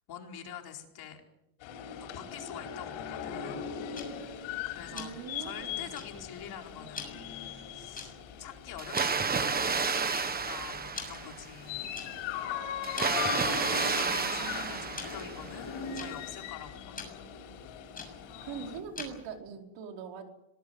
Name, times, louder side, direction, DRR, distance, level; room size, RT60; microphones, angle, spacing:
voice 1, 0.1-1.2 2.1-3.7 4.2-5.1 5.4-8.1 8.4-11.9 13.0-17.0, left 9 dB, 50° left, 3 dB, 4.5 m, -46 dB
sound 1, 1.6-18.8, left 8 dB, 75° left, 6.3 m, -40 dB
Tick-tock, 4.0-19.4, left 5 dB, 15° left, 6.9 m, -48 dB
voice 2, 4.9-6.0 13.8-15.0 18.4-20.3, right 6 dB, 65° right, 3 dB, 5.0 m, -43 dB
Water, 8.8-11.6 12.8-15.6, right 5 dB, 20° right, 1.4 m, -31 dB
26.0 x 19.5 x 8.2 m, 0.87 s
cardioid pair, 155°, 48 cm